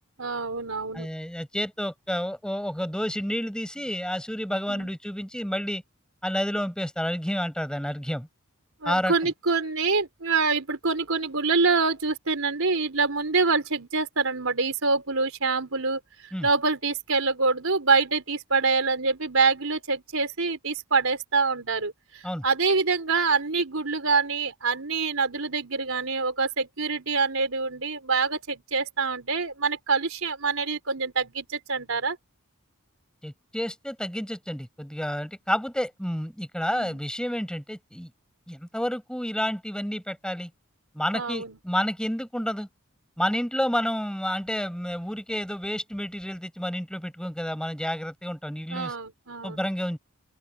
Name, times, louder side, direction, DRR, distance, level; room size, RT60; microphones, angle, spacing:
voice 1, 0.2-1.1 4.7-4.9 8.8-16.0 16.4-32.2 36.7-37.0 41.1-41.6 48.7-49.6, right 4 dB, 70° right, 4.4 m, -25 dB
voice 2, 0.9-5.8 6.2-8.3 8.8-9.3 16.3-16.5 22.2-22.5 33.2-38.1 38.5-40.5 40.9-42.7 43.2-48.9 49.4-50.0, equal, 5° left, 7.0 m, -30 dB
open air
head